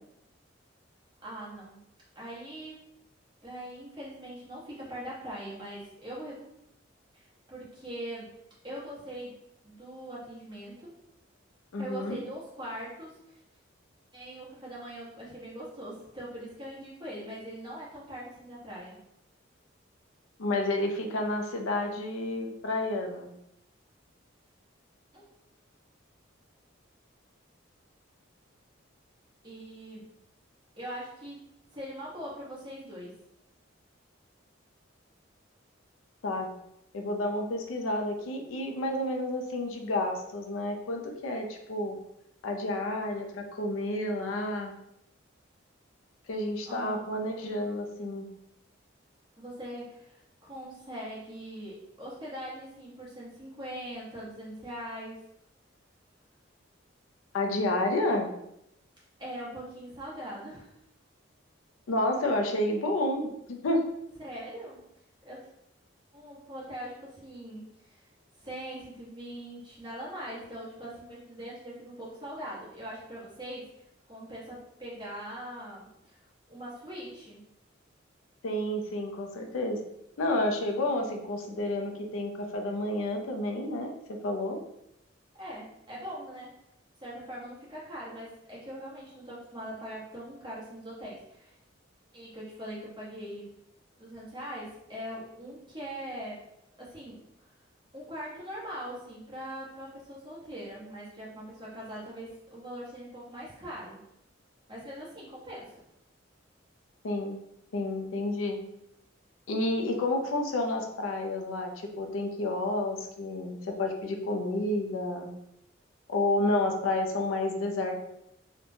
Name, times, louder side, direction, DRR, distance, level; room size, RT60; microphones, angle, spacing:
voice 1, 1.2-1.8 2.1-2.8 3.4-6.4 7.1-8.3 8.6-9.4 9.6-10.9 11.8-13.4 14.1-19.0 25.1-25.3 29.4-30.0 30.8-31.4 31.7-33.1 46.7-47.1 49.4-55.2 59.2-60.7 64.2-64.8 65.2-65.5 66.1-68.1 68.4-73.6 74.1-77.4 85.3-86.5 87.0-91.6 92.1-93.4 94.0-96.4 96.8-97.2 97.9-104.0 104.7-105.7, equal, 20° right, -7 dB, 0.8 m, -41 dB
voice 2, 11.7-12.2 20.4-23.3 36.2-36.5 36.9-42.0 42.4-44.7 46.3-48.3 57.3-58.3 61.9-63.8 78.4-79.8 80.2-84.6 107.0-107.4 107.7-108.6 109.5-115.3 116.1-117.9, left 1 dB, 80° left, 3 dB, 0.4 m, -30 dB
2.8 x 2.1 x 2.6 m, 0.81 s
head